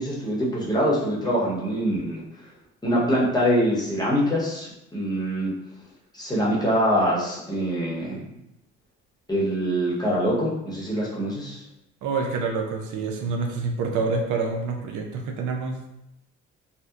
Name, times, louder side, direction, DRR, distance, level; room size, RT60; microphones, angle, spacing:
voice 1, 0.0-2.5 2.8-5.5 6.1-8.3 9.3-11.6, equal, 15° left, -5 dB, 0.8 m, -24 dB
voice 2, 12.0-15.8, right 4 dB, 80° right, 2 dB, 0.5 m, -27 dB
2.7 x 2.1 x 2.3 m, 0.84 s
cardioid pair, 90°, 30 cm